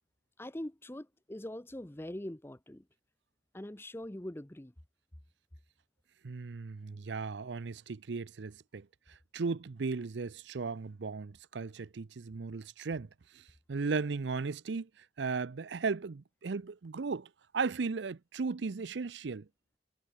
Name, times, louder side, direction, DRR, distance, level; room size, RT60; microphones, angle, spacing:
voice 1, 0.4-2.8 3.5-4.7, left 1 dB, 15° left, 0.7 m, -42 dB
voice 2, 6.2-8.9 9.3-14.9 15.2-19.5, right 4 dB, 70° right, 0.6 m, -36 dB
head